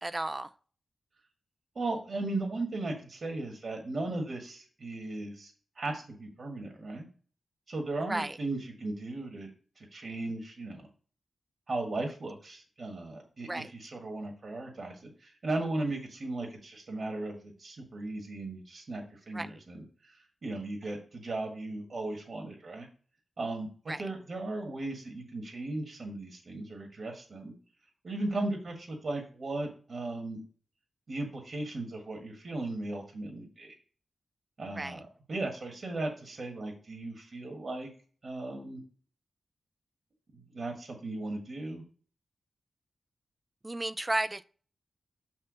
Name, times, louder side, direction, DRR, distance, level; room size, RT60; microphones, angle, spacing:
voice 1, 0.0-0.5 8.1-8.4 13.5-13.7 19.3-19.5 23.9-24.0 34.8-35.0 43.6-44.5, right 2 dB, 30° right, 0.4 m, -33 dB
voice 2, 1.7-7.0 7.7-9.5 9.7-10.9 11.7-22.9 23.4-27.5 28.0-30.4 31.1-33.7 34.6-37.9 38.2-38.8 40.3-41.8, right 2 dB, 60° right, 1.6 m, -37 dB
5.7 x 4.5 x 6.3 m
supercardioid pair, 40°, 0 cm